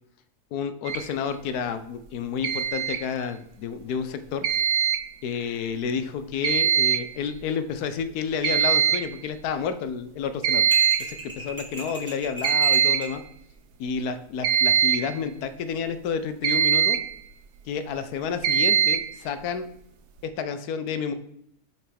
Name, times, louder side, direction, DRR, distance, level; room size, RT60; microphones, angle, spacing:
voice 1, 0.5-4.5 5.2-10.6 11.0-13.2 13.8-17.0 17.7-19.7 20.2-21.1, left 6 dB, 75° left, 11 dB, 1.1 m, -30 dB
sound 1, 0.9-1.0 2.4-3.0 4.4-5.0 6.4-7.0 7.3-7.4 8.0-8.1 8.4-9.0 10.4-11.1 12.4-13.1 14.4-15.1 16.4-17.1 18.4-19.1, right 8 dB, 75° right, 1.2 m, -21 dB
sound 2, 10.7-13.2, right 1 dB, 10° right, 2.2 m, -37 dB
7.2 x 4.7 x 5.1 m, 0.72 s
omnidirectional pair, 1.7 m